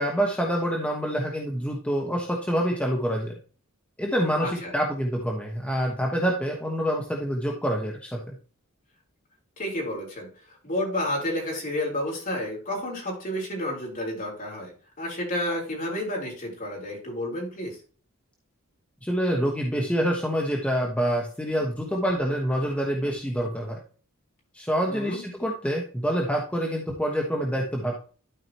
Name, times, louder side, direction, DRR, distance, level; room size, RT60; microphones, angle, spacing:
voice 1, 0.0-3.3 4.0-8.4 19.0-23.8 24.5-28.0, equal, 5° left, -1 dB, 1.2 m, -26 dB
voice 2, 4.4-4.7 9.6-14.7 15.0-17.8 24.9-25.2, left 1 dB, 40° left, -2 dB, 4.1 m, -31 dB
12.5 x 4.9 x 2.9 m, 0.39 s
head